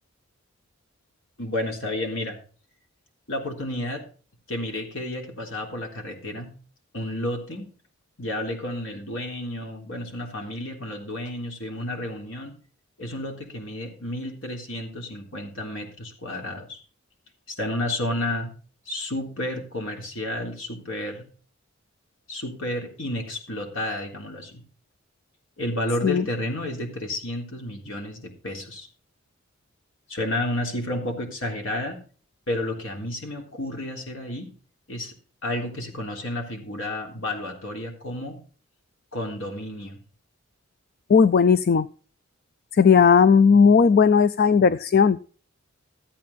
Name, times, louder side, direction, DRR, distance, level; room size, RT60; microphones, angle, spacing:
voice 1, 1.4-2.4 3.3-4.0 4.5-6.5 6.9-7.7 8.2-12.5 13.0-16.8 17.5-18.5 18.9-21.3 22.3-24.6 25.6-28.9 30.1-32.0 32.5-34.5 34.9-35.1 35.4-38.4 39.1-40.0, left 1 dB, 70° left, 1 dB, 3.5 m, -31 dB
voice 2, 41.1-41.9 42.7-45.2, left 6 dB, 50° left, 15 dB, 0.4 m, -16 dB
14.0 x 8.5 x 4.2 m, 0.40 s
head